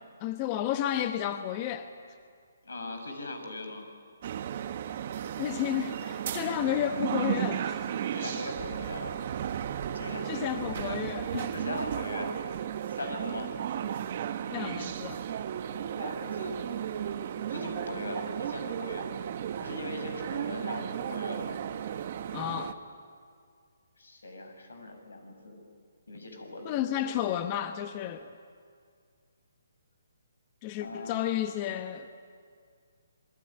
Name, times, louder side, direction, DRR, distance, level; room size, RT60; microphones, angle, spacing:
voice 1, 0.2-1.9 5.4-7.9 10.2-11.5 14.5-15.2 22.3-22.8 26.6-28.3 30.6-32.1, left 11 dB, 30° left, 9 dB, 1.0 m, -32 dB
voice 2, 2.6-3.8 8.1-9.2 9.9-11.0 11.5-12.4 12.9-13.5 15.9-16.5 17.5-19.1 19.6-21.6 24.0-25.6 26.1-27.1 30.8-31.3, left 2 dB, 85° left, 5 dB, 6.2 m, -40 dB
sound 1, 4.2-22.7, right 9 dB, 45° right, 1.3 m, -34 dB
26.5 x 20.5 x 9.9 m, 2.1 s
hypercardioid pair, 155°, 0 cm